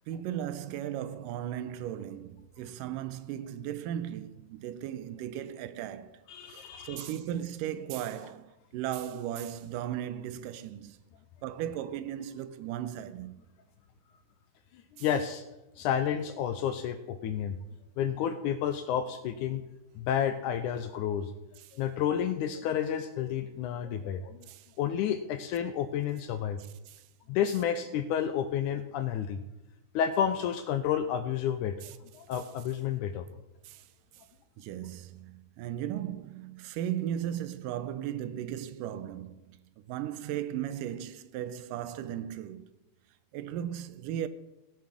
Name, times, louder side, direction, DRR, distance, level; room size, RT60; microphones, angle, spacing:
voice 1, 0.1-6.2 6.5-11.0 11.4-13.4 24.5-24.6 26.9-27.0 31.8-31.9 33.7-33.8 34.6-39.4 39.9-42.7 43.3-44.3, right 11 dB, 80° right, 2.1 m, -36 dB
voice 2, 6.3-7.1 15.0-15.4 15.8-17.6 18.0-19.6 20.0-21.3 21.8-24.4 24.8-26.6 27.3-29.4 30.0-31.8 32.1-33.3, left 9 dB, 80° left, 1.9 m, -30 dB
17.0 x 7.4 x 6.1 m
omnidirectional pair, 4.0 m